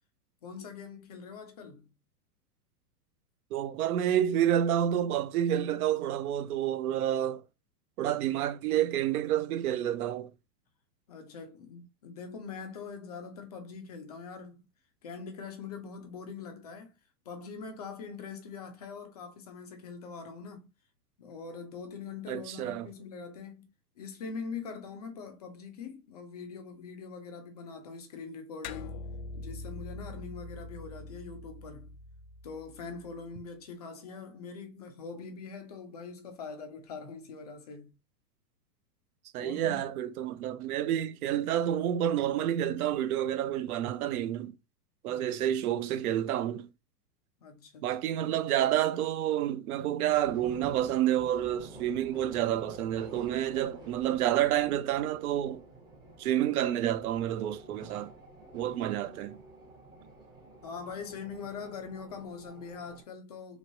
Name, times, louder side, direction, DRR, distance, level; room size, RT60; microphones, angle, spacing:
voice 1, 0.4-1.9 11.1-14.7 15.0-16.9 17.3-20.7 21.2-23.7 24.0-29.0 29.3-31.9 32.4-37.9 39.4-39.9 45.1-45.4 47.4-47.9 60.6-63.6, left 5 dB, 30° left, 0.3 m, -43 dB
voice 2, 3.5-7.4 8.0-10.3 22.3-22.9 39.3-44.5 45.0-46.7 47.8-55.6 56.2-58.1 58.5-59.4, right 11 dB, 60° right, 0.7 m, -29 dB
sound 1, 28.6-33.4, left 2 dB, 65° left, 0.6 m, -44 dB
sound 2, 50.0-63.0, right 2 dB, 10° right, 0.8 m, -50 dB
3.1 x 3.1 x 2.6 m
hypercardioid pair, 140°, 49 cm